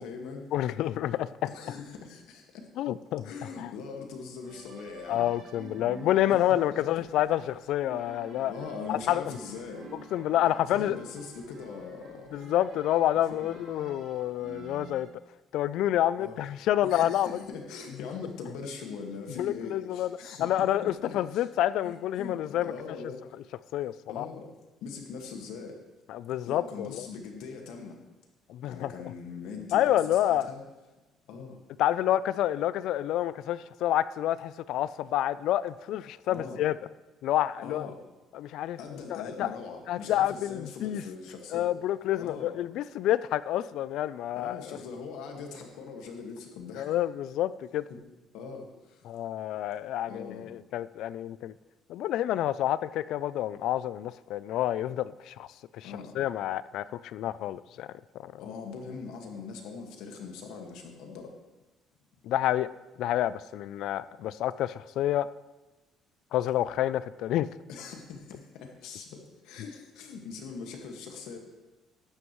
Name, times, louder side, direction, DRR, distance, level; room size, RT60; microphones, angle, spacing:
voice 1, 0.0-0.5 1.5-2.7 3.2-5.3 6.3-6.4 6.7-6.8 8.5-9.9 10.7-12.4 13.3-13.6 16.2-16.4 16.8-21.5 21.8-23.4 24.1-24.5 24.8-25.8 26.5-28.0 28.6-30.6 31.3-31.6 36.3-36.6 37.6-38.0 38.8-41.7 42.2-42.6 44.4-46.9 47.9-48.0 48.3-49.1 50.1-50.5 55.8-56.1 58.4-61.3 67.7-71.4, left 5 dB, 85° left, 3 dB, 1.7 m, -41 dB
voice 2, 0.5-1.3 2.8-3.2 3.6-3.7 5.1-8.5 8.9-9.3 10.1-11.0 12.3-15.1 15.5-17.4 19.4-22.7 23.7-24.3 26.1-27.1 28.5-28.9 29.7-30.5 31.8-36.7 37.2-37.9 38.3-38.8 39.1-39.5 39.9-41.0 41.5-44.8 46.7-47.8 49.0-51.5 51.9-55.5 55.7-57.9 58.2-58.3 62.2-62.7 63.0-65.3 66.3-67.5, left 12 dB, 70° left, 17 dB, 0.3 m, -28 dB
sound 1, 4.4-15.0, right 4 dB, 60° right, 2.5 m, -49 dB
12.5 x 9.8 x 3.1 m, 1.1 s
cardioid pair, 145°, 0 cm